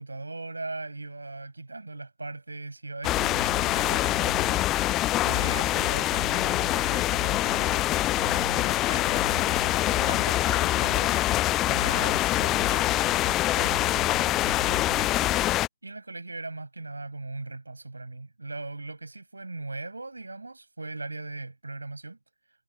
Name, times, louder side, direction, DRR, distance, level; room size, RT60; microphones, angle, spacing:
voice 1, 0.0-11.2 11.6-15.2 15.8-22.2, right 2 dB, 80° right, 7.6 m, -39 dB
sound 1, 3.0-15.7, left 15 dB, 20° left, 0.3 m, -25 dB
figure-of-eight pair, 135°, 0 cm